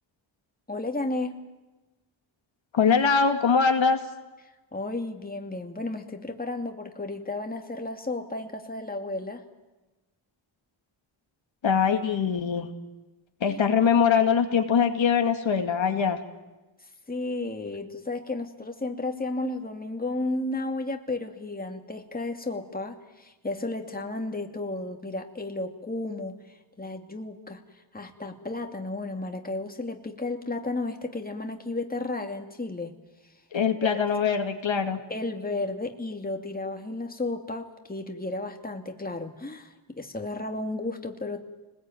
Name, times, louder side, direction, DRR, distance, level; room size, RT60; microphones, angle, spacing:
voice 1, 0.7-1.4 4.7-9.4 13.5-13.6 17.1-26.4 26.8-27.6 27.9-32.9 33.8-34.1 35.1-41.4, left 2 dB, 20° left, 4 dB, 2.5 m, -33 dB
voice 2, 2.7-4.0 11.6-12.7 13.4-16.2 33.5-35.0, left 6 dB, 65° left, 5 dB, 2.2 m, -22 dB
29.0 x 20.5 x 9.3 m, 1.1 s
wide cardioid pair, 95°, 48 cm